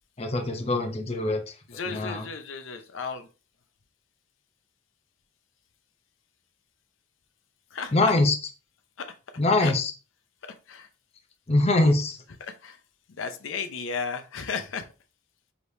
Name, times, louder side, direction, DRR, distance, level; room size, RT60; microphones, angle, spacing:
voice 1, 0.2-1.5 1.9-2.2 7.9-8.3 9.4-9.9 11.5-12.2, left 2 dB, 30° left, 4 dB, 0.6 m, -23 dB
voice 2, 1.7-3.3 7.7-8.1 9.0-9.1 9.6-9.7 10.7-10.9 12.4-12.8 13.1-14.9, left 5 dB, 75° left, 8 dB, 0.6 m, -34 dB
4.9 x 3.2 x 2.7 m, 0.33 s
head